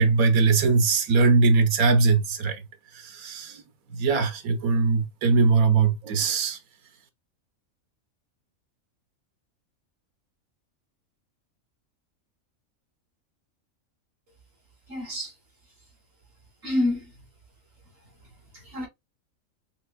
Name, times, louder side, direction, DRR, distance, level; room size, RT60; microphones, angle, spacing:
voice 1, 0.0-2.6 2.9-3.6 3.9-6.6, right 4 dB, 90° right, 1.3 m, -21 dB
voice 2, 14.9-15.3 16.6-17.2 18.5-18.9, left 1 dB, 65° right, 3.1 m, -28 dB
5.9 x 3.3 x 2.2 m
omnidirectional pair, 1.4 m